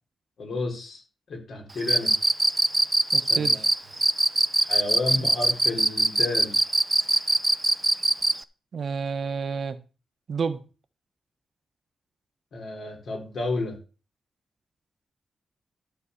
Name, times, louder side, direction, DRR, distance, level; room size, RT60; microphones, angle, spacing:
voice 1, 0.4-1.0 1.3-2.1 3.3-3.6 4.6-6.6 12.5-13.8, left 2 dB, 75° left, 3.8 m, -31 dB
Cricket, 1.8-8.4, right 2 dB, 15° right, 0.5 m, -21 dB
voice 2, 3.1-3.6 5.2-5.3 8.7-9.8 10.3-10.6, right 5 dB, 60° right, 1.0 m, -30 dB
12.5 x 4.3 x 7.0 m
wide cardioid pair, 135°, 0 cm